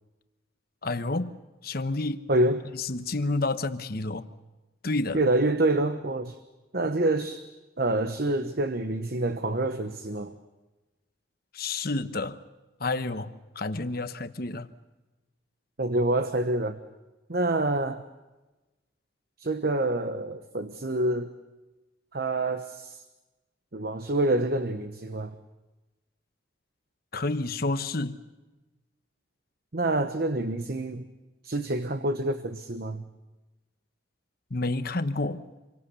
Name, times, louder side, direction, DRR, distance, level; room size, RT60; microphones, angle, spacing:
voice 1, 0.8-2.2 2.8-4.3 4.8-5.2 11.5-12.4 12.8-14.7 27.1-28.2 34.5-35.5, left 2 dB, 50° left, 11 dB, 1.1 m, -30 dB
voice 2, 2.3-2.6 5.1-6.4 6.7-7.4 7.8-10.3 15.8-16.8 17.3-18.0 19.4-21.3 22.1-23.0 23.7-25.4 29.7-31.1 31.4-33.0, right 2 dB, 50° right, 8 dB, 1.0 m, -27 dB
28.0 x 23.5 x 6.9 m, 1.1 s
head